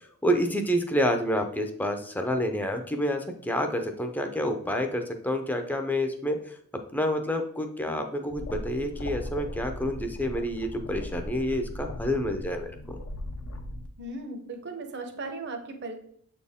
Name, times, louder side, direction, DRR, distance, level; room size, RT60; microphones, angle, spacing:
voice 1, 0.2-6.5 6.9-13.0, equal, 10° left, 5 dB, 0.6 m, -28 dB
sound 1, 8.3-13.9, left 1 dB, 65° left, 0.7 m, -38 dB
voice 2, 14.0-15.9, right 2 dB, 50° right, 5 dB, 0.9 m, -37 dB
7.4 x 4.3 x 3.6 m, 0.64 s
head